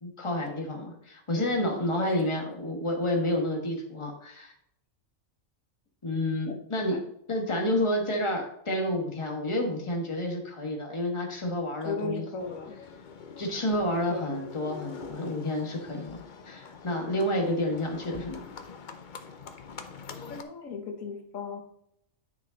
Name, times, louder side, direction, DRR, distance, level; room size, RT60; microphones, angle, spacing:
voice 1, 0.0-4.5 6.0-7.0 7.3-12.2 13.4-16.2 16.4-18.5, left 1 dB, 25° left, 1 dB, 1.5 m, -29 dB
voice 2, 11.8-12.8 14.1-14.3 20.3-21.6, left 4 dB, 90° left, 3 dB, 1.5 m, -35 dB
Livestock farm animals working animals, 12.4-20.4, left 5 dB, 45° left, 0.7 m, -44 dB
9.4 x 5.1 x 3.9 m, 0.74 s
omnidirectional pair, 1.4 m